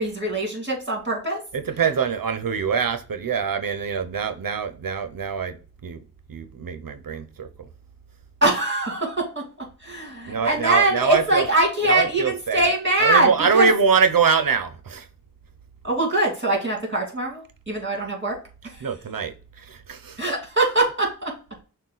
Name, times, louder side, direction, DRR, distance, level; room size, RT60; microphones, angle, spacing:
voice 1, 0.0-1.4 8.4-9.5 9.8-13.7 15.8-18.4 20.2-21.3, right 2 dB, 35° right, 2.2 m, -22 dB
voice 2, 1.5-5.6 5.8-6.0 6.3-7.5 10.3-11.5 11.8-12.7 13.0-15.0 18.8-19.3 19.7-20.2, right 6 dB, 75° right, 0.6 m, -23 dB
6.3 x 2.2 x 3.8 m
wide cardioid pair, 50°, 34 cm